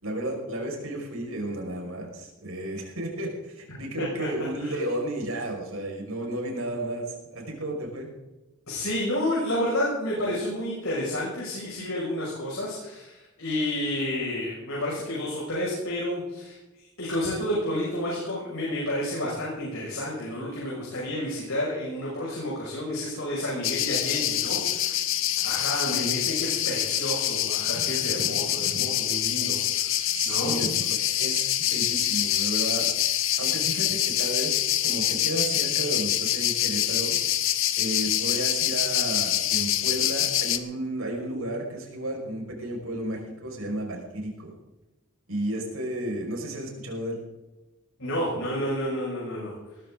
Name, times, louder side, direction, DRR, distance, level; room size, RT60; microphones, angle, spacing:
voice 1, 0.0-8.1 25.9-26.1 30.1-30.7 31.2-32.9 33.4-34.6 34.8-37.2 37.8-44.5 45.3-47.2, right 1 dB, 85° right, 0 dB, 5.6 m, -33 dB
voice 2, 4.0-4.3 4.6-4.8 8.7-16.6 17.0-25.1 25.4-30.7 48.0-49.5, left 1 dB, 85° left, -5 dB, 6.1 m, -30 dB
sound 1, 23.6-40.6, left 12 dB, 65° left, 1.0 m, -26 dB
19.5 x 13.5 x 3.9 m, 1.0 s
head